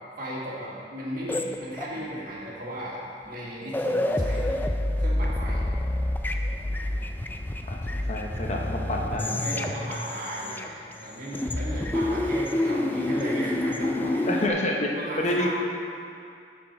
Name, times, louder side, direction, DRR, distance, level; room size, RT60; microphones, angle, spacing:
voice 1, 0.2-3.0 3.3-4.6 5.0-5.6 9.4-14.3 15.0-15.5, right 1 dB, 55° right, -6 dB, 1.8 m, -35 dB
sound 1, 1.3-2.2 3.3-3.4 3.6-11.0 11.3-14.5, left 1 dB, 10° left, 0.3 m, -28 dB
voice 2, 7.7-9.7 14.0-14.9 15.2-15.5, left 1 dB, 40° left, 0 dB, 0.8 m, -29 dB
12.5 x 4.4 x 4.3 m, 2.5 s
head